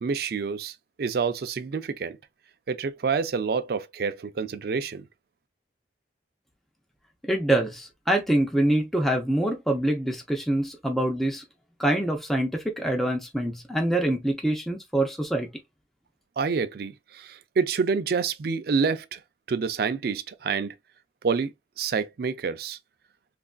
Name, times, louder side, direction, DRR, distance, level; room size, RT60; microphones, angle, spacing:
voice 1, 0.0-2.2 2.7-5.0 16.4-19.2 19.5-20.7 21.2-22.8, right 5 dB, 60° right, 0.4 m, -28 dB
voice 2, 7.2-11.4 11.8-15.5, right 1 dB, ahead, 0.5 m, -25 dB
3.3 x 2.5 x 2.2 m
head